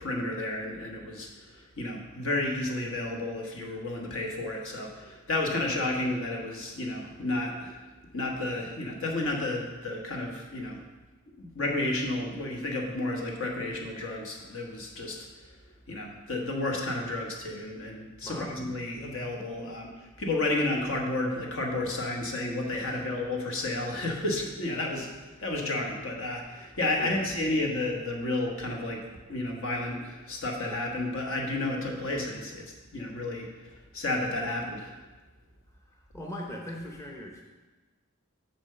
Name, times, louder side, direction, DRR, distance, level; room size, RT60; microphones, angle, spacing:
voice 1, 0.0-7.8 8.1-10.8 11.4-15.6 15.9-32.6 32.9-35.0, left 2 dB, 65° left, 0 dB, 1.3 m, -32 dB
voice 2, 18.2-18.5 22.8-23.1 27.0-27.3 35.9-37.4, equal, 15° left, -1 dB, 0.7 m, -40 dB
7.2 x 4.4 x 6.7 m, 1.2 s
head